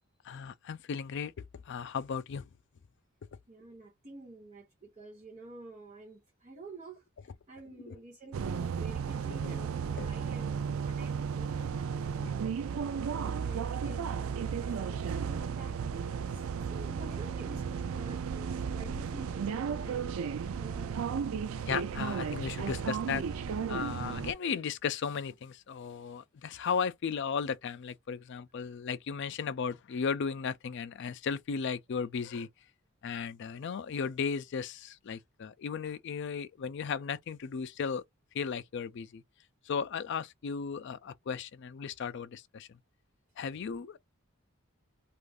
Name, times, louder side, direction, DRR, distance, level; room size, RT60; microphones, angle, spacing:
voice 1, 0.2-1.3 1.7-2.5 7.9-8.0 9.4-9.6 10.0-10.1 12.2-12.3 13.8-13.9 14.7-14.8 21.7-23.2 23.7-32.5 33.0-38.0 38.3-39.2 39.7-42.7 43.4-44.0, left 6 dB, 60° left, 0.4 m, -35 dB
voice 2, 3.5-12.5 13.2-21.3, right 2 dB, 35° right, 0.9 m, -50 dB
sound 1, 8.3-24.3, right 6 dB, 85° right, 0.4 m, -34 dB
2.5 x 2.4 x 3.4 m
head